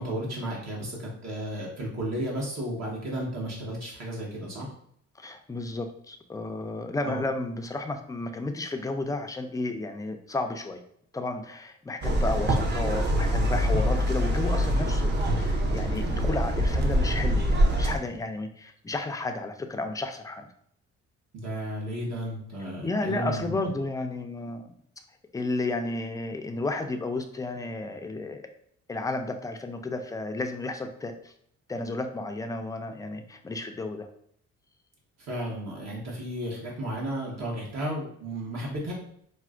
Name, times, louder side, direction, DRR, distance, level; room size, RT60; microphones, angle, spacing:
voice 1, 0.0-4.7 7.0-7.3 21.3-23.5 35.2-38.9, right 1 dB, 60° right, -3 dB, 1.1 m, -33 dB
voice 2, 5.2-10.8 11.1-20.5 22.8-24.7 25.3-28.4 28.9-31.1 31.7-34.1, left 2 dB, 10° left, 5 dB, 0.3 m, -32 dB
sound 1, 12.0-18.0, equal, 35° right, 0.6 m, -24 dB
4.2 x 2.1 x 2.4 m, 0.68 s
cardioid pair, 90°, 30 cm